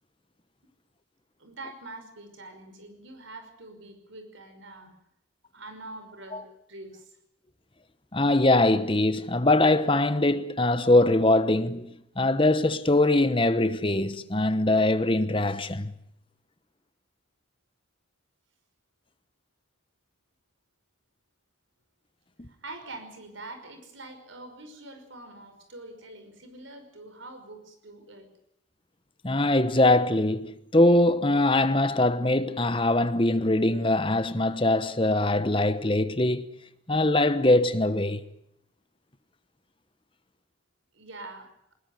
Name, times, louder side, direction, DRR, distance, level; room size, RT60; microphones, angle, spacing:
voice 1, 1.4-4.9 5.5-7.1 22.5-28.3 40.9-41.7, right 2 dB, 90° right, 5.6 m, -44 dB
voice 2, 8.1-15.9 22.4-22.5 29.2-36.5 36.9-38.2, left 2 dB, 25° left, 1.1 m, -22 dB
20.5 x 20.0 x 9.4 m
head